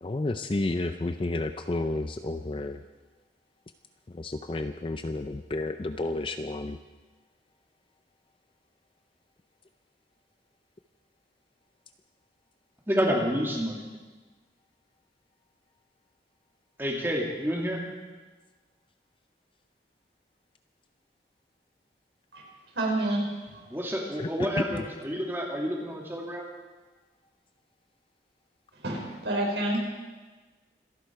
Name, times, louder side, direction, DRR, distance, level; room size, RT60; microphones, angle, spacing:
voice 1, 0.0-2.8 4.1-6.8 24.2-24.3 24.6-24.8, left 2 dB, 30° left, 8 dB, 0.4 m, -31 dB
voice 2, 12.9-13.8 16.8-17.8 23.7-26.4, equal, 15° right, -1 dB, 2.5 m, -29 dB
voice 3, 22.7-23.2 23.5-23.6 28.8-29.8, right 1 dB, 85° right, -1 dB, 4.9 m, -28 dB
26.5 x 11.0 x 4.6 m, 1.3 s
head